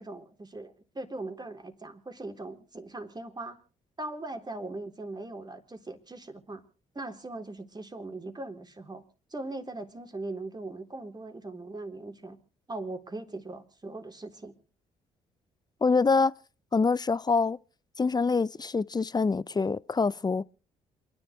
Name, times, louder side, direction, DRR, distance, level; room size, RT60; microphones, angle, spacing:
voice 1, 0.0-3.6 4.0-6.6 6.9-9.0 9.3-12.4 12.7-14.5, right 2 dB, 25° right, 3.7 m, -40 dB
voice 2, 15.8-16.3 16.7-17.6 18.0-20.4, left 4 dB, 25° left, 0.7 m, -25 dB
28.0 x 11.0 x 3.3 m
hypercardioid pair, 50°, 17 cm